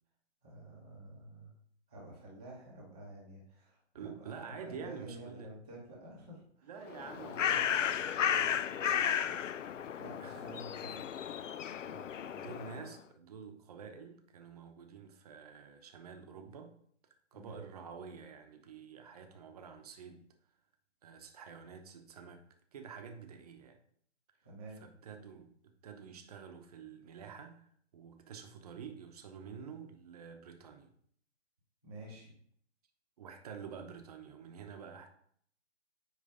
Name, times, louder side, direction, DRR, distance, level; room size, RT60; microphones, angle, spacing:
voice 1, 0.4-1.6 1.9-6.7 10.0-11.1 17.3-17.6 24.4-24.8 31.8-32.4, right 1 dB, 5° left, 0.4 m, -50 dB
voice 2, 3.9-5.5 6.7-9.6 10.2-10.6 11.9-16.8 17.3-20.3 21.0-22.5 22.7-23.8 24.8-30.9 33.2-35.1, right 6 dB, 30° right, 0.8 m, -49 dB
Bird, 6.8-12.9, left 9 dB, 85° left, 0.6 m, -34 dB
9.5 x 3.3 x 4.9 m
hypercardioid pair, 150°, 36 cm